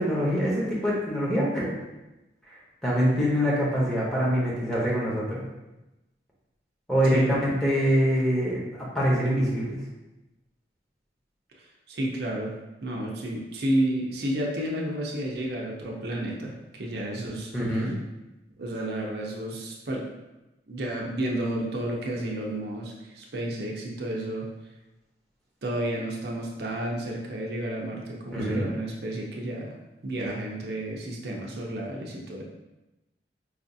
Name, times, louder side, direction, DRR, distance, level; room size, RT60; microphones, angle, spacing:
voice 1, 0.0-1.8 2.5-5.4 6.9-9.8 17.5-17.9 28.3-28.7, equal, 5° left, -7 dB, 0.8 m, -25 dB
voice 2, 11.9-12.5 12.8-17.5 18.6-20.1 20.7-24.5 25.6-29.8 30.0-32.4, right 1 dB, 65° right, -2 dB, 0.6 m, -31 dB
4.8 x 2.5 x 2.6 m, 1.0 s
head